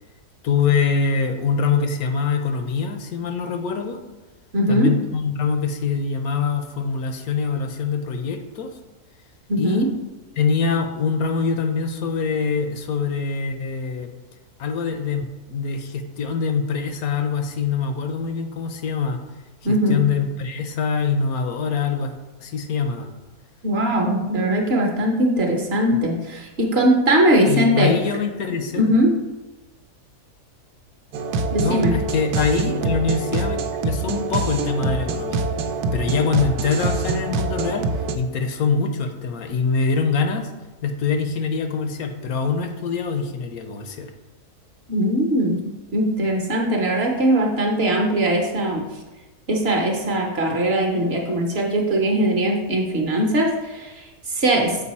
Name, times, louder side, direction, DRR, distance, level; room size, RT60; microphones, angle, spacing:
voice 1, 0.4-4.0 4.7-8.8 9.6-9.9 10.4-14.1 14.6-19.2 19.9-22.1 22.4-23.1 25.9-26.0 27.5-28.9 31.6-33.6 33.8-35.5 35.9-37.9 38.1-40.5 40.8-44.1, left 5 dB, 70° left, 6 dB, 1.1 m, -24 dB
voice 2, 4.5-4.9 9.5-9.9 19.6-20.0 23.6-27.9 28.8-29.1 31.5-31.9 44.9-45.6 45.9-48.8 49.5-54.8, right 1 dB, 45° right, 1 dB, 1.1 m, -20 dB
sound 1, 31.1-38.2, right 3 dB, 90° right, 1.2 m, -25 dB
6.9 x 5.2 x 4.2 m, 1.1 s
omnidirectional pair, 1.6 m